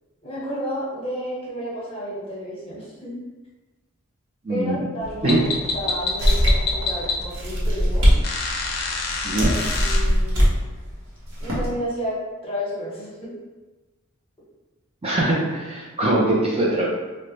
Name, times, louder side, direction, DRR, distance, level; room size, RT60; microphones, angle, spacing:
voice 1, 0.2-3.1 4.5-5.5 5.7-8.1 9.4-9.5 9.8-10.6 11.4-13.3, equal, 25° left, -7 dB, 1.1 m, -31 dB
voice 2, 4.4-4.8 5.2-5.5 9.2-9.5 15.0-16.9, right 1 dB, 30° right, -4 dB, 0.5 m, -22 dB
sound 1, 5.0-10.0, left 3 dB, 50° left, 0.5 m, -28 dB
sound 2, 6.2-6.8 7.3-8.2 8.6-8.7 9.4-10.5 11.2-11.7, equal, 70° right, 1.0 m, -19 dB
3.8 x 2.2 x 3.1 m, 1.2 s
head